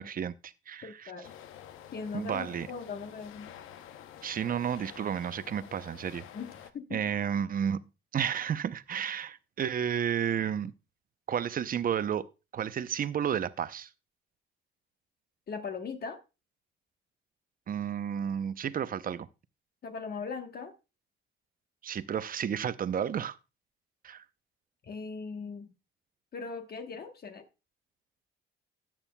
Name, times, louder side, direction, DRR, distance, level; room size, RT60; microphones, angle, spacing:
voice 1, 0.0-1.1 2.1-2.7 4.2-6.2 6.9-7.8 8.1-10.7 11.3-13.9 17.7-19.3 21.8-23.4 24.0-24.2, right 8 dB, 45° right, 0.6 m, -32 dB
voice 2, 0.8-1.3 1.9-3.5 6.3-7.0 15.5-16.2 19.8-20.7 24.8-25.7 26.3-27.4, left 5 dB, 50° left, 1.2 m, -39 dB
sound 1, 1.2-6.7, left 10 dB, 90° left, 0.8 m, -49 dB
13.5 x 8.7 x 2.2 m
cardioid pair, 90°, 20 cm